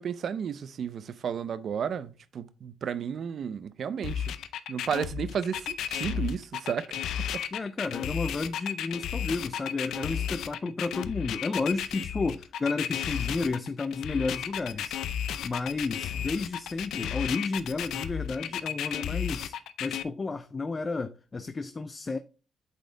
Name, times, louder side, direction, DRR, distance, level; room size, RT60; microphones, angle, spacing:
voice 1, 0.0-4.3 4.7-7.0 7.3-7.4, right 7 dB, 55° right, 0.6 m, -33 dB
sound 1, 4.0-20.0, left 9 dB, 80° left, 0.5 m, -33 dB
voice 2, 7.5-15.0 15.4-22.2, left 3 dB, 25° left, 0.4 m, -32 dB
8.2 x 4.2 x 3.9 m
cardioid pair, 120°, 0 cm